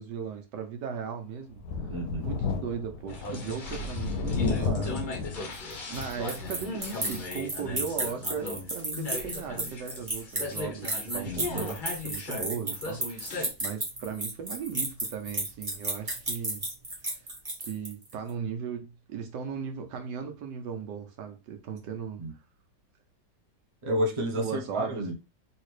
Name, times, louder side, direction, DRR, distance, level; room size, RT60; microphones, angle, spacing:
voice 1, 0.0-1.6 2.2-5.5 5.9-16.6 17.1-17.2 17.6-22.2 24.3-25.1, right 7 dB, 80° right, 1.3 m, -37 dB
Thunder, 1.6-6.7 7.1-7.2 8.6-8.7, left 4 dB, 75° left, 1.0 m, -32 dB
voice 2, 1.9-2.3 11.2-11.7 22.2-22.3 23.8-25.1, equal, 55° right, 0.3 m, -30 dB
sound 1, 3.1-13.5, left 2 dB, 50° left, 0.6 m, -38 dB
sound 2, 5.5-18.1, right 1 dB, 25° right, 1.0 m, -33 dB
3.3 x 2.8 x 3.1 m
omnidirectional pair, 1.8 m